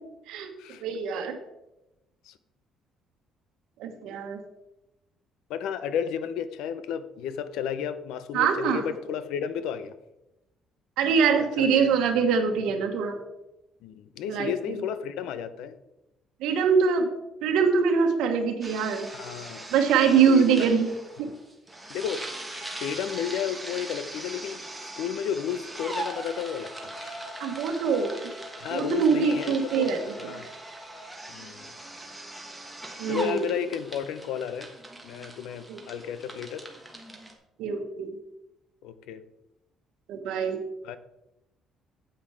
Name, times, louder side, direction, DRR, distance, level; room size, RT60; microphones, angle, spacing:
voice 1, 0.8-1.3 3.8-4.4 8.3-8.8 11.0-13.2 14.3-14.8 16.4-17.1 17.4-19.1 19.7-20.9 21.2-21.3 27.4-28.3 28.7-30.0 33.0-33.5 35.7-35.8 37.6-38.1 40.1-40.6, right 6 dB, 85° right, 3 dB, 1.2 m, -23 dB
voice 2, 5.5-10.0 11.3-11.9 13.8-15.8 19.1-19.6 20.1-20.7 21.2-21.3 21.9-22.3 22.8-27.2 28.6-30.5 31.3-31.7 33.1-34.7 35.0-36.7 38.8-39.2 40.8-41.0, left 8 dB, 90° left, 13 dB, 0.7 m, -33 dB
sound 1, 18.6-37.3, right 1 dB, 5° right, 1.2 m, -40 dB
8.8 x 8.0 x 4.8 m, 0.92 s
cardioid pair, 175°, 0 cm